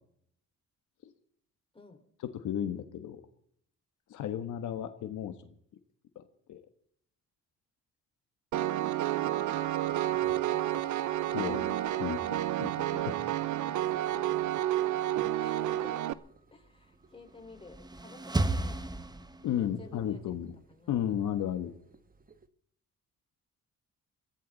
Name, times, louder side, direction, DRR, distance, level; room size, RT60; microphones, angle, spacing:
voice 1, 2.4-3.2 4.1-5.5 6.1-6.2 6.5-6.6 10.2-10.6 11.3-13.2 19.4-20.5 20.9-21.7, left 10 dB, 80° left, 8 dB, 1.5 m, -34 dB
Piano, 8.5-16.1, right 13 dB, 75° right, 0.9 m, -30 dB
voice 2, 9.0-9.3 15.4-16.2 16.5-19.1 19.6-20.3 20.7-21.3, left 2 dB, 20° left, 3 dB, 4.6 m, -53 dB
sound 1, 9.2-22.5, right 6 dB, 30° right, 1.4 m, -52 dB
sound 2, 17.4-19.8, right 2 dB, 15° right, 1.2 m, -33 dB
22.5 x 15.0 x 4.1 m, 0.67 s
cardioid pair, 90°, 30 cm